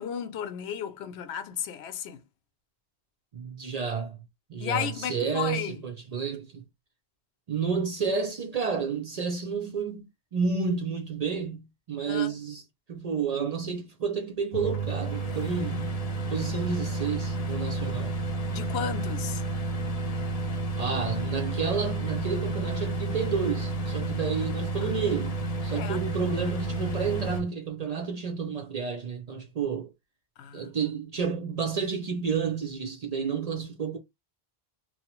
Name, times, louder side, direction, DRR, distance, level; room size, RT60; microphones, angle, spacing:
voice 1, 0.0-2.2 4.6-5.8 12.1-12.4 18.5-19.4 24.8-24.9 25.7-26.0 30.4-30.7, left 8 dB, 85° left, 0.8 m, -34 dB
voice 2, 3.3-4.2 4.5-6.6 7.5-12.6 12.9-15.9 16.3-18.2 20.8-29.9 30.5-34.0, right 6 dB, 50° right, 0.5 m, -30 dB
sound 1, 14.5-27.4, right 2 dB, 40° left, 0.7 m, -31 dB
2.9 x 2.0 x 2.9 m
omnidirectional pair, 1.1 m